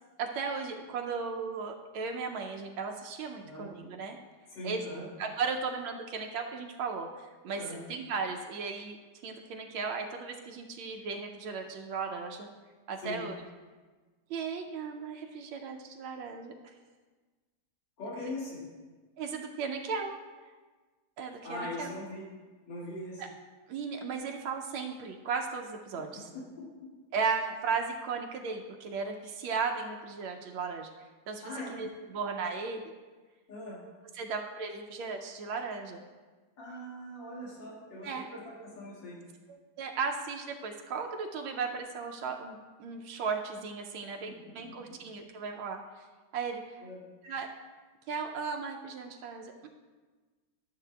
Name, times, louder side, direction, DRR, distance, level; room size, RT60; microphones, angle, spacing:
voice 1, 0.2-4.2 4.6-9.0 9.2-12.5 12.9-13.4 14.3-16.7 19.2-20.1 21.2-21.9 23.2-23.3 23.7-26.3 27.1-31.4 31.7-32.8 34.1-36.0 38.0-38.3 39.5-46.1 46.3-46.8 47.2-47.5 48.1-49.7, right 5 dB, 85° right, 3 dB, 1.4 m, -36 dB
voice 2, 4.5-5.1 7.6-7.8 13.0-13.2 18.0-18.6 21.4-22.2 22.7-23.2 26.1-26.9 31.4-31.7 33.5-33.8 36.6-39.2 44.4-44.7 46.8-47.0, left 1 dB, 65° left, -7 dB, 2.7 m, -41 dB
12.5 x 7.3 x 2.2 m, 1.4 s
omnidirectional pair, 2.2 m